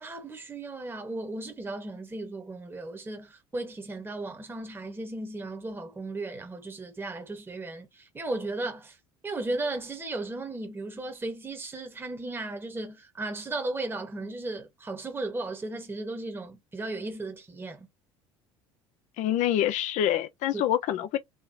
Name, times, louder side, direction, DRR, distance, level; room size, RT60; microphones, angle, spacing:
voice 1, 0.0-9.0 9.2-17.9 20.5-20.6, right 2 dB, 15° right, 1.3 m, -35 dB
voice 2, 19.2-21.2, left 11 dB, 55° left, 0.8 m, -26 dB
4.0 x 3.2 x 2.9 m
figure-of-eight pair, 65°, 15 cm